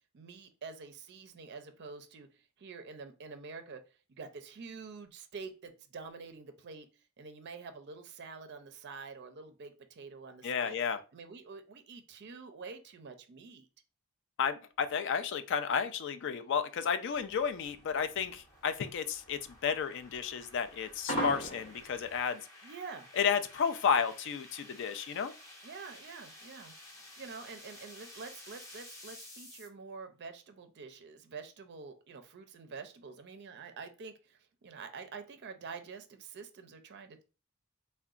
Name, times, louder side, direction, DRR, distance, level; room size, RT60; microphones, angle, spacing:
voice 1, 0.1-3.8 4.1-10.8 11.1-13.7 22.6-23.1 25.6-26.7 27.2-37.2, right 4 dB, 50° right, 0.4 m, -47 dB
voice 2, 10.4-11.0 14.4-22.7 23.2-25.3, left 6 dB, 55° left, 0.3 m, -32 dB
sound 1, 16.2-29.7, left 1 dB, 15° left, 0.6 m, -54 dB
sound 2, 17.2-22.2, right 1 dB, 85° left, 0.8 m, -38 dB
3.7 x 2.1 x 2.4 m
head